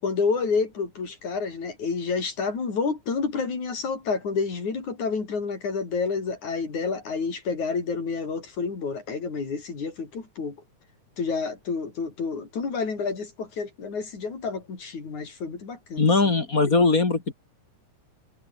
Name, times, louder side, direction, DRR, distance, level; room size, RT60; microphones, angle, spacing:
voice 1, 0.0-10.6 11.2-16.1 16.7-16.8, left 5 dB, 70° left, 6.5 m, -29 dB
voice 2, 16.0-17.3, left 3 dB, 30° left, 2.5 m, -20 dB
omnidirectional pair, 3.6 m